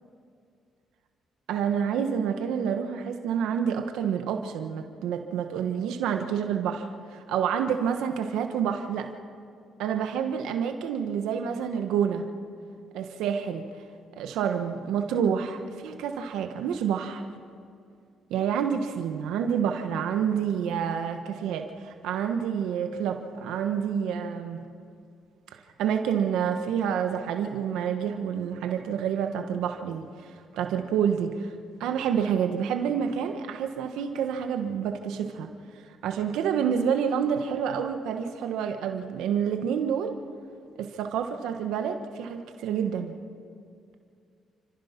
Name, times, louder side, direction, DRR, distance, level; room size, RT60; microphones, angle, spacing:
voice 1, 1.5-9.1 9.8-12.3 12.9-13.7 14.2-17.2 18.3-24.7 25.5-31.5 31.8-35.5 36.0-40.1 40.8-43.2, right 8 dB, 90° right, 6 dB, 1.3 m, -28 dB
30.0 x 14.5 x 5.9 m, 2.3 s
cardioid pair, 105°, 0 cm